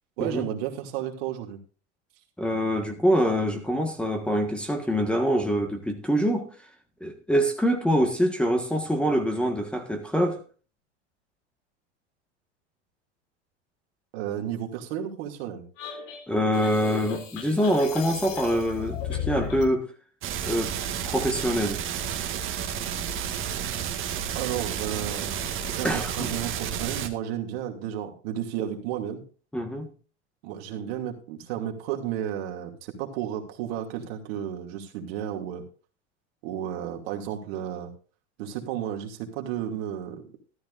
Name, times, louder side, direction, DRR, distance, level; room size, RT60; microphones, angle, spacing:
voice 1, 0.2-1.6 14.1-15.6 24.3-25.4 25.7-29.2 30.4-35.6 36.4-37.9 38.4-40.3, right 10 dB, 60° right, 2.6 m, -32 dB
voice 2, 2.4-6.5 7.0-10.4 16.3-19.9 20.5-20.7 21.0-21.8 25.8-26.3 29.5-29.9, equal, 5° left, 1.6 m, -25 dB
sound 1, 15.8-19.7, left 8 dB, 55° left, 3.5 m, -35 dB
sound 2, 20.2-27.1, right 8 dB, 35° right, 1.8 m, -31 dB
13.5 x 13.0 x 2.6 m
hypercardioid pair, 110°, 34 cm